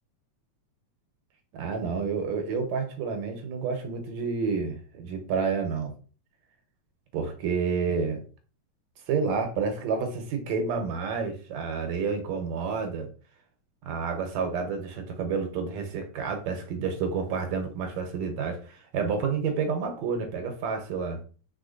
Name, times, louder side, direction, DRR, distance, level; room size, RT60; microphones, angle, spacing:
voice 1, 1.5-5.9 7.1-8.2 9.1-13.1 13.8-21.2, right 5 dB, 75° right, 5 dB, 2.0 m, -29 dB
4.9 x 4.3 x 2.5 m, 0.39 s
omnidirectional pair, 3.4 m